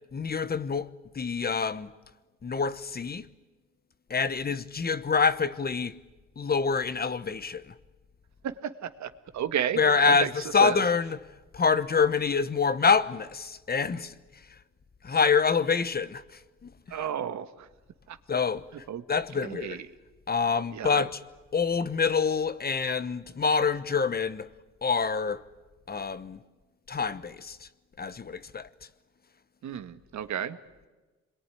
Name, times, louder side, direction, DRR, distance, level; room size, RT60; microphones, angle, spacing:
voice 1, 0.1-1.9 2.4-3.2 4.1-6.0 6.4-7.6 9.8-10.3 10.5-11.1 11.5-14.1 15.0-16.2 16.6-16.7 18.3-18.6 19.1-19.8 20.3-21.1 21.5-24.5 24.8-25.4 25.9-26.4 26.9-27.6 28.0-28.7, left 5 dB, 30° left, 1.1 m, -26 dB
voice 2, 8.4-10.8 16.9-17.7 18.1-18.2 18.9-19.0 19.4-19.9 20.7-21.1 29.6-30.6, right 9 dB, 70° right, 1.6 m, -33 dB
27.0 x 22.5 x 9.9 m
cardioid pair, 90°, 30 cm